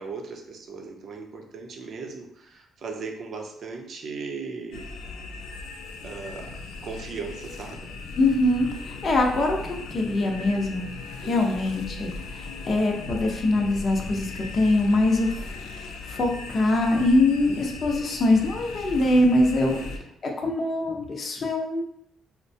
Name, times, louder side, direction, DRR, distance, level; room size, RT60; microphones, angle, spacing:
voice 1, 0.0-4.9 6.0-6.5 6.8-7.9 11.2-11.5 19.6-20.0, right 4 dB, 60° right, 2 dB, 0.6 m, -37 dB
sound 1, 4.7-20.0, left 3 dB, 85° left, 0.4 m, -38 dB
voice 2, 8.2-9.6 9.9-10.9 11.2-15.5 16.0-19.8 20.2-21.8, left 2 dB, 45° left, 1 dB, 0.7 m, -23 dB
4.3 x 2.1 x 2.6 m, 0.74 s
cardioid pair, 90°, 0 cm